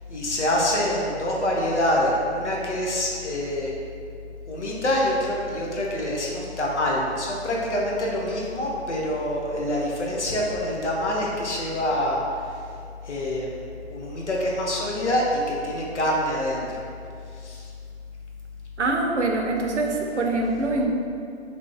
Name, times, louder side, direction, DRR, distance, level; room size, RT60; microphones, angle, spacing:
voice 1, 0.1-3.7 4.5-12.6 13.0-16.8 17.3-17.7, left 1 dB, 90° left, -2 dB, 0.8 m, -26 dB
voice 2, 18.8-20.9, right 2 dB, 90° right, 1 dB, 0.6 m, -24 dB
3.0 x 2.7 x 3.4 m, 2.4 s
figure-of-eight pair, 125°, 34 cm